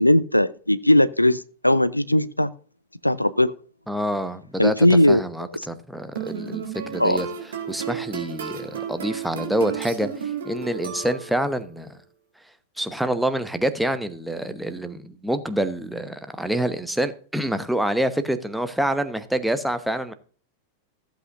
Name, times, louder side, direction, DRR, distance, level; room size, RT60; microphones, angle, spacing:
voice 1, 0.0-2.5 3.0-3.5 4.6-5.2 7.0-7.2, left 1 dB, 85° left, 0.4 m, -18 dB
voice 2, 3.9-4.7 5.1-7.3 7.7-11.9 12.8-20.1, right 1 dB, ahead, 0.9 m, -26 dB
sound 1, 6.1-11.5, right 7 dB, 65° right, 2.1 m, -33 dB
15.0 x 8.0 x 2.5 m
figure-of-eight pair, 90°, 0 cm